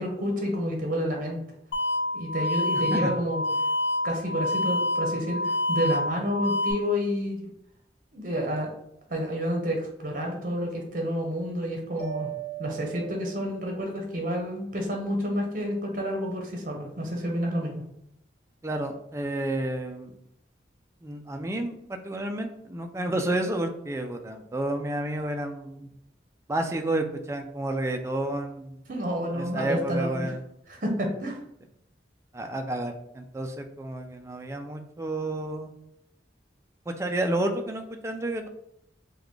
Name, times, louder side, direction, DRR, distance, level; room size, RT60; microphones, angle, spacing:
voice 1, 0.0-1.4 2.1-3.4 4.0-7.4 8.1-8.7 9.1-12.3 12.6-17.8 28.9-30.3 30.7-31.4, equal, 45° right, 1 dB, 0.8 m, -29 dB
sound 1, 1.7-6.7, left 1 dB, 70° left, 0.4 m, -27 dB
Mallet percussion, 12.0-14.0, right 12 dB, 55° left, 1.0 m, -39 dB
voice 2, 18.6-20.1 21.0-25.9 26.5-28.8 29.3-30.4 32.3-35.7 36.9-38.5, right 1 dB, 15° right, 5 dB, 0.3 m, -30 dB
3.9 x 2.3 x 3.2 m, 0.77 s
head